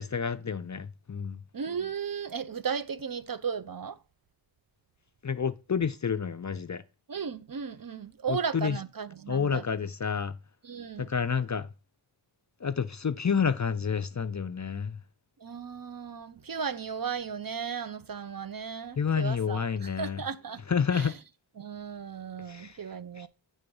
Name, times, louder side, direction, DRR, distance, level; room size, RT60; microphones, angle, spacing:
voice 1, 0.0-1.4 5.2-6.8 8.3-8.8 9.3-10.3 11.0-11.7 12.6-15.0 19.0-20.2 20.7-21.2 22.5-22.8 23.2-23.3, left 6 dB, 40° left, 0.4 m, -29 dB
voice 2, 1.5-4.0 7.1-9.6 10.6-11.1 15.4-20.6 20.9-21.1 21.6-23.3, right 6 dB, 50° right, 0.5 m, -35 dB
8.4 x 3.7 x 5.3 m
wide cardioid pair, 40°, 47 cm